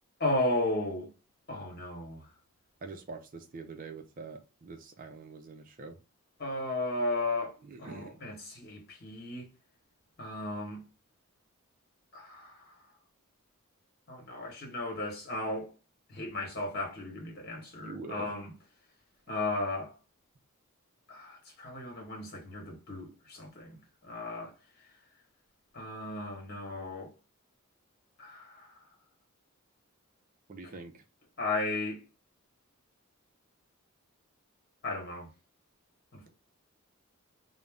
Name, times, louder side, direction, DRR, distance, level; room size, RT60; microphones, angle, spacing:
voice 1, 0.2-1.1 1.5-2.2 6.4-9.5 10.2-10.8 12.1-12.7 14.1-15.7 16.1-18.5 19.3-19.9 21.1-23.8 24.0-24.5 25.7-27.1 28.2-28.7 30.6-30.7 31.4-32.0 34.8-35.3 36.1-36.3, left 2 dB, 45° left, 1.1 m, -35 dB
voice 2, 2.8-6.0 7.6-8.2 17.6-18.3 30.5-31.0, right 3 dB, 40° right, 0.4 m, -44 dB
2.5 x 2.0 x 3.4 m
head